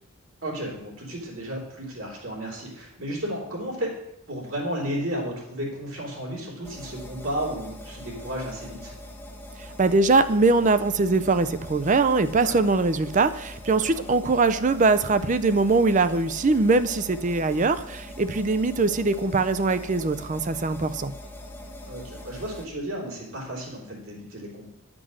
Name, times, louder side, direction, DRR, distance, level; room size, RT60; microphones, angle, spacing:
voice 1, 0.4-3.9 4.3-8.9 12.4-12.6 13.7-14.0 21.9-24.7, equal, 70° right, -3 dB, 3.4 m, -33 dB
sound 1, 6.6-22.7, left 1 dB, 10° left, 0.9 m, -42 dB
voice 2, 9.8-21.1, right 3 dB, 35° right, 12 dB, 0.5 m, -22 dB
10.0 x 6.1 x 6.3 m, 0.81 s
head